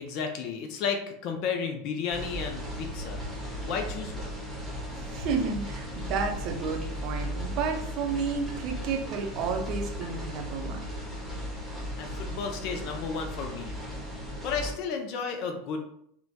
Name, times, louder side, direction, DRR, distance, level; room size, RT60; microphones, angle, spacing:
voice 1, 0.0-3.2 3.6-4.4 12.0-13.7 14.4-15.8, left 6 dB, 50° left, 4 dB, 0.3 m, -33 dB
sound 1, 2.1-14.7, equal, 10° right, 0.9 m, -36 dB
voice 2, 4.9-10.8, right 5 dB, 45° right, 3 dB, 0.5 m, -31 dB
2.9 x 2.1 x 2.6 m, 0.71 s
figure-of-eight pair, 80°, 0 cm